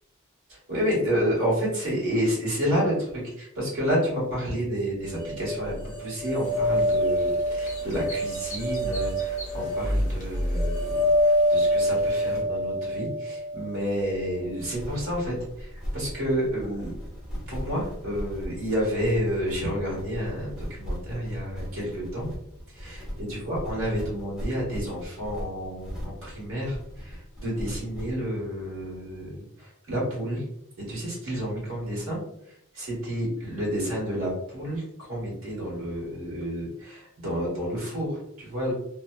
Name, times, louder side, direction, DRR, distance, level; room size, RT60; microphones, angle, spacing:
voice 1, 0.5-16.9 17.5-22.3 22.7-30.4 30.9-32.2 32.7-38.7, equal, 85° right, -5 dB, 1.5 m, -30 dB
sound 1, 5.1-14.3, equal, 45° right, 1.1 m, -26 dB
sound 2, 6.4-12.4, equal, 35° left, 0.6 m, -44 dB
sound 3, 14.6-28.2, equal, 5° right, 0.7 m, -38 dB
2.9 x 2.1 x 2.2 m, 0.75 s
head